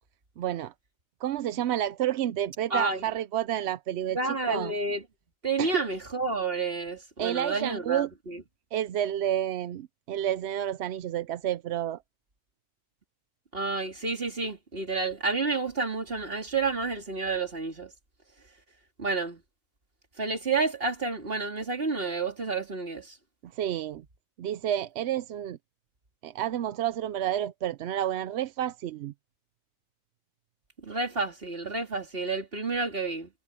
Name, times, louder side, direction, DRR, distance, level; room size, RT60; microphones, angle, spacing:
voice 1, 0.4-0.7 1.2-4.7 5.6-5.8 7.2-8.1 8.7-12.0 23.4-24.0 24.4-25.6 26.2-29.1, right 11 dB, 65° right, 0.8 m, -30 dB
voice 2, 2.7-3.0 4.1-5.0 5.4-8.4 13.5-17.9 19.0-19.4 20.2-23.2 30.8-33.3, right 3 dB, 45° right, 3.3 m, -30 dB
omnidirectional pair, 1.4 m